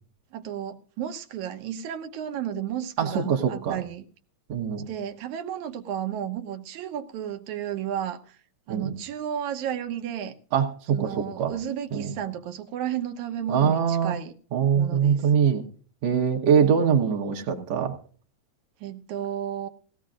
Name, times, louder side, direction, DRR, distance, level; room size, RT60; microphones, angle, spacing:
voice 1, 0.3-4.1 4.9-8.2 8.7-10.3 10.9-14.3 14.7-15.3 18.8-19.7, right 9 dB, 80° right, 2.4 m, -33 dB
voice 2, 3.0-3.8 4.5-4.9 8.7-8.9 10.5-11.5 11.9-12.1 13.5-14.1 14.5-15.6 16.0-17.9, right 7 dB, 60° right, 2.2 m, -23 dB
18.5 x 16.0 x 2.5 m
omnidirectional pair, 3.4 m